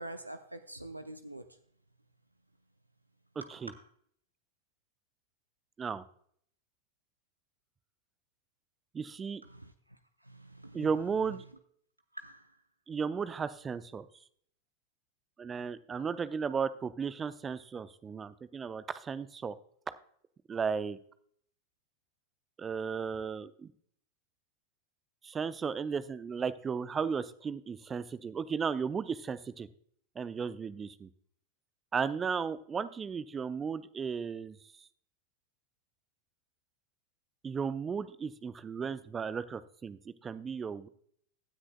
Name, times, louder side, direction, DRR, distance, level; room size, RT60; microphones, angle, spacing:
voice 1, 0.0-1.6 3.4-3.8 9.4-10.9 12.1-12.6, right 1 dB, 85° right, 0.6 m, -46 dB
voice 2, 8.9-9.4 10.7-11.4 12.9-14.1 15.4-19.6 19.9-20.0 20.5-21.0 22.6-23.7 25.2-29.7 30.2-31.1 31.9-34.9 37.4-40.9, right 6 dB, 20° right, 0.6 m, -35 dB
16.5 x 9.8 x 2.3 m
figure-of-eight pair, 90°, 0 cm